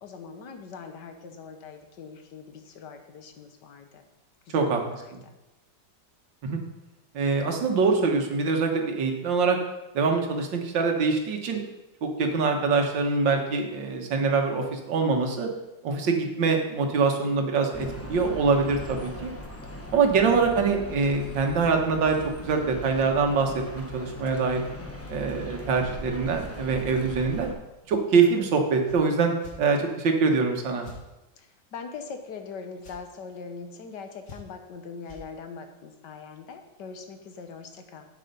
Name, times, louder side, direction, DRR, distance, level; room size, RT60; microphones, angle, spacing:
voice 1, 0.0-4.0 4.5-5.3 19.9-20.6 31.4-38.1, left 5 dB, 70° left, 6 dB, 1.6 m, -42 dB
voice 2, 4.5-4.8 6.4-6.6 7.1-9.6 9.9-11.6 12.0-15.5 15.8-19.3 19.9-22.2 22.4-24.6 25.1-27.5 27.9-29.3 29.6-30.9, right 4 dB, 90° right, 3 dB, 2.0 m, -24 dB
sound 1, 17.7-27.5, equal, 10° left, 0.8 m, -40 dB
sound 2, 28.8-29.0 29.4-29.6 30.8-31.0 32.8-33.0 34.2-34.7 35.0-35.2, left 3 dB, 90° left, 2.7 m, -45 dB
8.3 x 7.8 x 5.4 m, 0.98 s
omnidirectional pair, 1.9 m